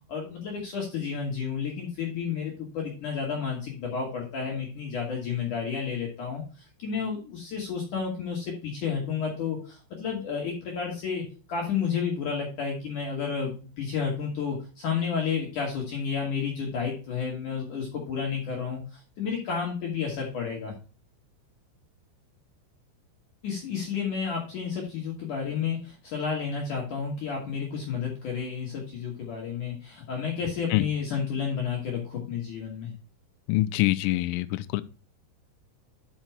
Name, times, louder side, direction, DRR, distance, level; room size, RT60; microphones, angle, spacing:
voice 1, 0.1-6.4 6.8-20.7 23.4-32.9, left 6 dB, 60° left, 2.2 m, -31 dB
voice 2, 33.5-34.8, left 17 dB, 85° left, 3.1 m, -25 dB
6.5 x 6.0 x 4.4 m
omnidirectional pair, 6.0 m